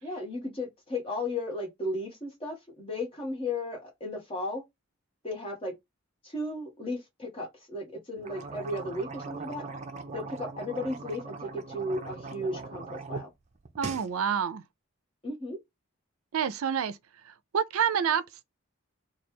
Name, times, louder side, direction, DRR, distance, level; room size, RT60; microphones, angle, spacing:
voice 1, 0.0-4.6 5.2-5.7 6.2-9.7 10.1-13.3 15.2-15.6, left 1 dB, 25° left, 1.3 m, -35 dB
sound 1, 8.2-13.2 13.6-14.1, right 4 dB, 30° right, 0.5 m, -40 dB
voice 2, 13.8-14.6 16.3-17.0 17.2-18.4, right 8 dB, 85° right, 0.4 m, -28 dB
3.2 x 2.3 x 4.4 m
head